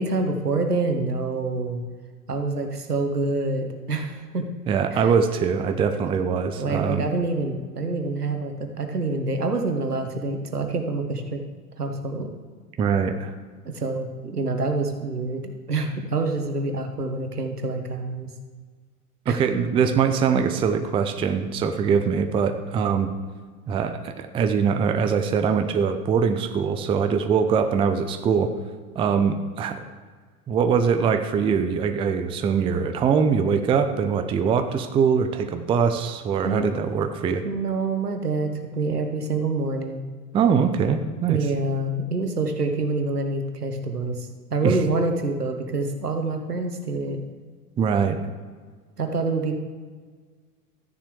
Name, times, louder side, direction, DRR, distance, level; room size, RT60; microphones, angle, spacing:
voice 1, 0.0-1.8 2.3-4.4 4.9-5.1 6.1-6.2 6.6-11.4 11.8-12.3 13.6-18.3 19.3-19.4 36.4-36.6 37.4-40.0 41.3-47.2 49.0-49.5, right 3 dB, 85° right, 5 dB, 1.2 m, -26 dB
voice 2, 4.7-7.1 12.8-13.3 19.3-23.1 23.7-28.5 29.0-29.8 30.5-37.4 40.3-41.4 44.6-44.7 47.8-48.2, right 6 dB, 10° right, 8 dB, 0.4 m, -22 dB
13.5 x 9.9 x 3.2 m, 1.5 s
figure-of-eight pair, 80°, 45 cm